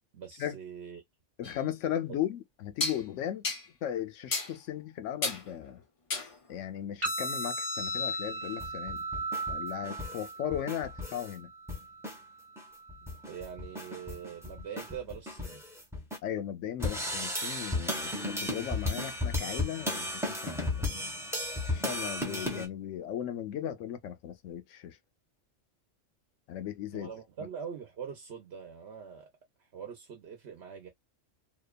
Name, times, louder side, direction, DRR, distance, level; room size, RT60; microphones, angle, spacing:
voice 1, 0.1-1.0 2.1-2.2 13.1-15.6 26.9-29.3 29.6-30.9, right 7 dB, 60° right, 1.0 m, -43 dB
voice 2, 1.4-3.5 3.8-5.8 6.5-9.1 9.5-11.5 16.2-20.9 21.7-25.0 26.5-27.1, left 10 dB, 75° left, 0.9 m, -37 dB
sound 1, 1.4-1.6 2.8-3.0 3.4-3.7 4.3-4.5 5.2-5.5 6.1-6.4, left 3 dB, 35° left, 0.6 m, -32 dB
sound 2, 7.0-15.0, right 1 dB, 25° right, 1.1 m, -38 dB
sound 3, 8.4-11.3 11.7-12.2 12.6-12.7 12.9-16.2 16.8-22.7, left 1 dB, 5° right, 0.7 m, -35 dB
2.8 x 2.2 x 2.2 m
omnidirectional pair, 1.3 m